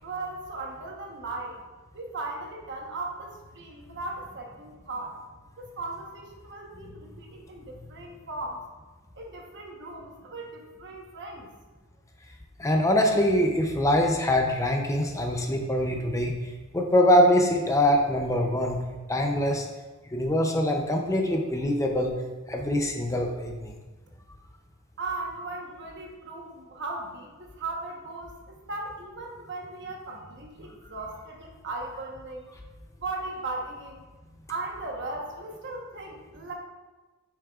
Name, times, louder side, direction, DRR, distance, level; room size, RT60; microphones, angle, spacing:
voice 1, 0.0-1.6 1.9-5.2 5.6-8.7 9.1-11.5 25.0-32.5 33.0-34.1 34.5-36.5, right 2 dB, 55° right, 1 dB, 1.1 m, -37 dB
voice 2, 12.6-16.4 16.7-18.8 19.1-19.7 20.1-22.1 22.5-23.7, left 1 dB, 15° left, 2 dB, 0.6 m, -23 dB
8.4 x 6.1 x 2.4 m, 1.2 s
head